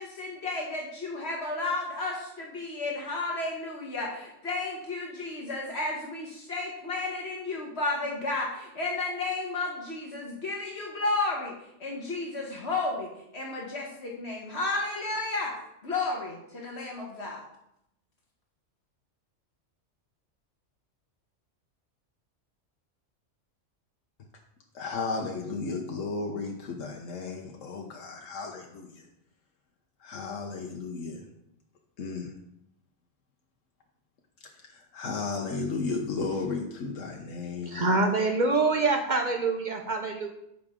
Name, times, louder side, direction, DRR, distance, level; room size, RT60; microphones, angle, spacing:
voice 1, 0.0-11.5 11.8-15.6 15.8-17.4, left 3 dB, 60° left, -2 dB, 1.6 m, -32 dB
voice 2, 24.7-29.0 30.0-31.3 32.0-32.3 34.7-37.9, left 4 dB, 90° left, 1 dB, 1.3 m, -34 dB
voice 3, 37.7-40.3, right 3 dB, 45° right, 4 dB, 0.7 m, -25 dB
9.6 x 6.3 x 3.7 m, 0.80 s
omnidirectional pair, 1.3 m